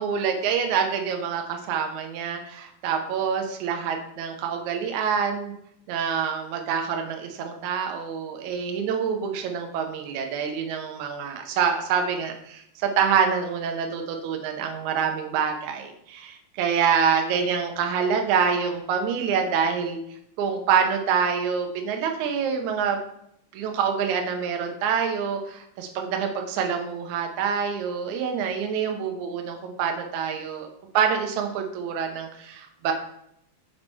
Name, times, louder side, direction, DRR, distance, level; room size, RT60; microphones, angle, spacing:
voice 1, 0.0-5.5 5.9-20.0 20.4-23.0 23.5-30.7 30.9-32.9, right 6 dB, 80° right, 4 dB, 1.7 m, -26 dB
5.8 x 4.4 x 4.4 m, 0.74 s
omnidirectional pair, 4.5 m